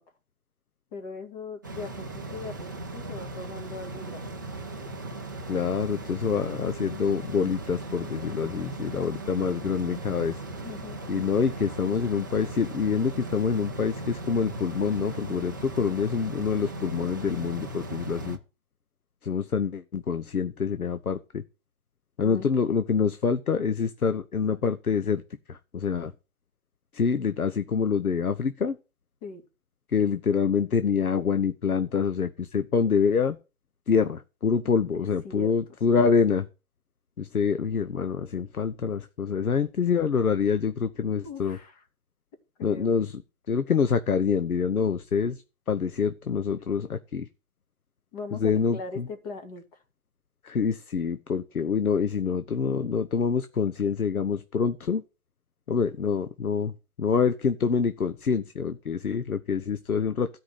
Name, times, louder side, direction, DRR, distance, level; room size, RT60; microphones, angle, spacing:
voice 1, 0.9-2.5 2.9-4.2 10.6-11.0 22.2-22.5 29.2-29.4 34.9-35.5 35.9-36.0 41.2-41.8 42.6-42.9 48.1-49.6, left 4 dB, 25° left, 2.5 m, -40 dB
sound 1, 1.6-18.4, right 2 dB, 15° right, 0.5 m, -38 dB
voice 2, 5.5-10.4 11.1-18.4 19.2-21.4 22.2-25.2 25.5-26.1 26.9-28.8 29.9-33.4 33.9-36.5 37.2-41.6 42.6-43.2 43.5-45.4 45.7-47.3 48.3-49.1 50.4-55.0 55.7-56.7 57.0-60.3, left 6 dB, 80° left, 1.1 m, -26 dB
13.0 x 5.0 x 7.8 m
figure-of-eight pair, 145°, 43 cm